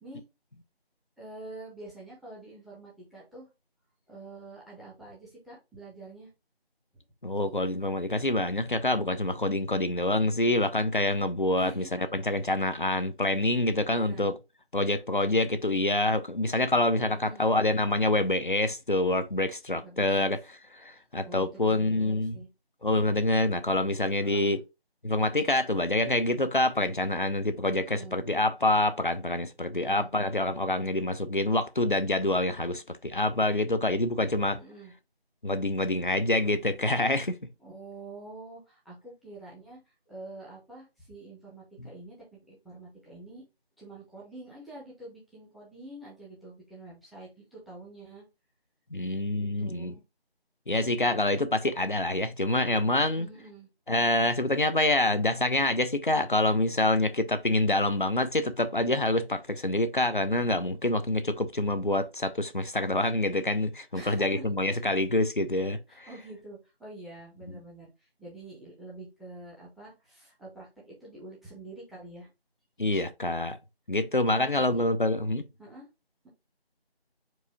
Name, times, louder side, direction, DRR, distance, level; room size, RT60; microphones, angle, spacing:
voice 1, 1.2-3.5 4.1-6.3 11.6-11.9 13.9-14.3 17.0-17.5 19.8-20.3 21.3-22.5 24.2-24.6 27.8-28.2 29.7-30.1 34.6-34.9 37.6-43.4 43.8-48.2 49.4-50.0 53.0-53.7 63.9-64.8 65.9-72.3 74.3-74.8 75.6-75.9, right 2 dB, ahead, 0.7 m, -46 dB
voice 2, 7.2-14.3 14.7-20.4 20.8-22.4 22.8-24.6 25.0-34.6 35.4-37.4 41.8-41.9 48.9-49.9 50.7-53.3 53.9-66.1 67.5-67.6 72.8-73.6 73.9-75.4, left 2 dB, 50° left, 0.6 m, -26 dB
4.7 x 2.6 x 4.1 m
figure-of-eight pair, 170°, 32 cm